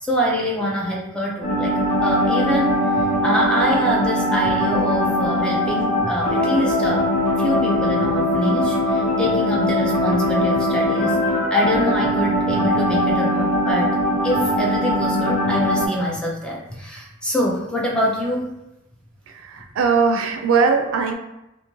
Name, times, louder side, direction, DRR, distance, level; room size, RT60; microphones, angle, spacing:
voice 1, 0.0-7.1 7.4-11.2 11.5-14.0 14.2-18.5, equal, 5° left, -3 dB, 0.4 m, -24 dB
sound 1, 1.4-15.9, left 1 dB, 40° left, 0.8 m, -21 dB
voice 2, 19.3-21.1, right 5 dB, 80° right, 5 dB, 0.4 m, -20 dB
2.5 x 2.4 x 3.0 m, 0.92 s
head